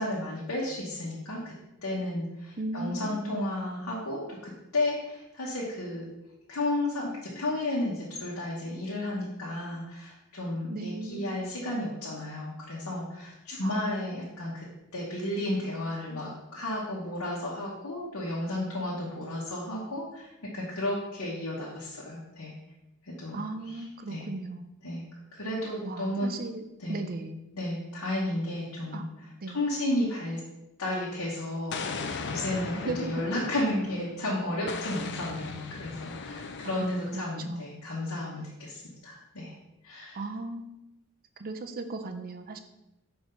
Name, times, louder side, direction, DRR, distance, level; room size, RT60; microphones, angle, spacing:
voice 1, 0.0-1.5 1.8-6.1 6.5-14.7 14.9-22.5 23.0-23.4 23.6-24.3 24.8-25.0 25.3-26.5 26.8-27.0 27.5-30.4 30.8-39.5 39.8-40.2, left 1 dB, 70° left, -6 dB, 1.2 m, -33 dB
voice 2, 2.6-3.4 10.7-11.4 13.6-13.9 23.3-25.0 25.8-26.6 26.9-27.4 28.9-29.0 29.4-29.6 32.8-33.2 36.6-37.8 40.1-40.8 41.4-42.6, right 2 dB, 40° right, 8 dB, 0.5 m, -37 dB
Explosion, 31.7-34.2 34.7-37.2, left 4 dB, 50° left, 0.5 m, -38 dB
4.6 x 3.8 x 5.6 m, 0.93 s
head